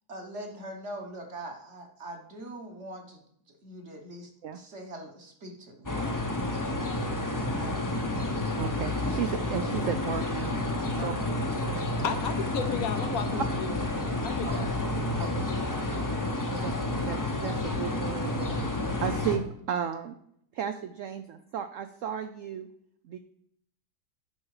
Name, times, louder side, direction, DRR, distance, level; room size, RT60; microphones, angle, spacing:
voice 1, 0.1-3.2 3.5-6.0 7.5-7.9 10.9-11.3 11.7-12.0 14.4-14.8, right 1 dB, 45° right, 3 dB, 1.5 m, -43 dB
sound 1, 5.9-19.4, left 2 dB, 20° left, 0.6 m, -30 dB
voice 2, 8.6-10.6 11.0-11.1 11.7-11.8 15.2-15.3 16.5-20.2 20.5-22.7 23.1-23.2, right 8 dB, 70° right, 8 dB, 0.8 m, -34 dB
voice 3, 12.0-13.7 14.2-14.7, left 7 dB, 65° left, 9 dB, 1.0 m, -33 dB
9.8 x 6.0 x 4.8 m, 0.70 s
omnidirectional pair, 1.8 m